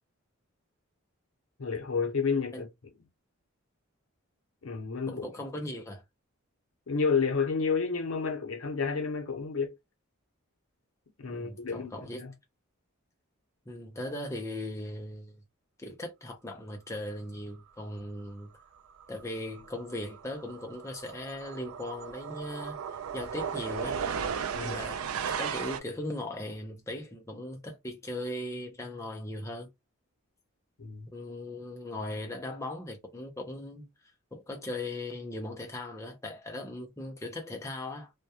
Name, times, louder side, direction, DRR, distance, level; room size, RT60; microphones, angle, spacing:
voice 1, 1.6-2.7 4.6-5.1 6.9-9.7 11.2-11.9 12.2-12.3 24.5-24.8 30.8-31.1, left 5 dB, 70° left, 0.7 m, -30 dB
voice 2, 5.1-6.0 11.3-12.3 13.7-15.4 15.8-18.5 19.1-22.8 23.1-24.0 24.6-29.7 31.1-33.9 34.3-38.1, left 1 dB, 15° left, 0.5 m, -38 dB
sound 1, 19.0-19.2 19.5-25.8, right 7 dB, 80° right, 0.4 m, -36 dB
2.2 x 2.1 x 2.7 m
head